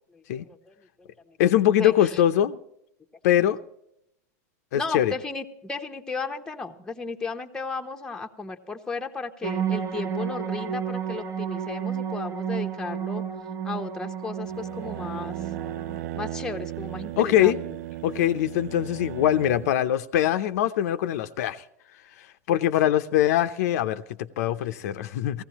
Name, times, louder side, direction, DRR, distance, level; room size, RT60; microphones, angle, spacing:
voice 1, 0.1-0.7 1.8-2.2 4.7-13.2 13.6-15.4 16.1-17.6, left 4 dB, 10° left, 0.9 m, -34 dB
voice 2, 1.4-2.6 3.2-3.6 4.7-5.1 17.2-17.6 18.0-21.6 22.5-25.4, left 11 dB, 65° left, 0.7 m, -22 dB
sound 1, 9.4-16.0, right 8 dB, 20° right, 0.9 m, -31 dB
sound 2, 14.4-19.8, right 14 dB, 65° right, 0.4 m, -36 dB
18.0 x 15.5 x 3.0 m
supercardioid pair, 135°, 9 cm